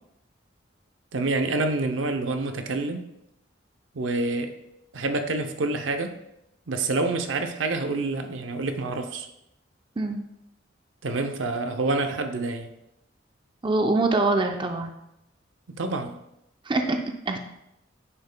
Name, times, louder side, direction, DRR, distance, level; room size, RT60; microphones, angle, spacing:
voice 1, 1.1-3.1 3.9-4.5 4.9-6.1 6.7-9.3 11.0-12.7 15.7-16.1, right 3 dB, 85° right, 6 dB, 0.6 m, -27 dB
voice 2, 13.6-14.9 16.7-17.0 17.3-17.4, right 2 dB, 25° right, 5 dB, 0.5 m, -24 dB
9.7 x 5.3 x 2.2 m, 0.83 s
head